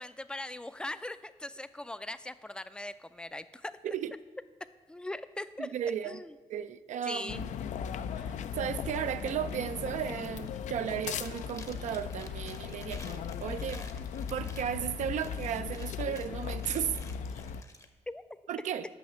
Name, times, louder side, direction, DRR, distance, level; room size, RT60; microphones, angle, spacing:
voice 1, 0.0-3.9 4.9-5.7 6.0-6.3 7.0-7.4 18.1-18.2, left 1 dB, 5° left, 0.4 m, -40 dB
voice 2, 5.6-6.2 6.5-7.4 8.2-13.8 14.3-17.0 18.5-18.9, right 9 dB, 70° right, 0.4 m, -35 dB
sound 1, 7.3-17.6, left 7 dB, 70° left, 0.4 m, -38 dB
Chewing mastication, 10.0-10.6 10.9-17.9, left 3 dB, 25° left, 0.7 m, -52 dB
6.2 x 5.6 x 7.2 m
cardioid pair, 85°, 13 cm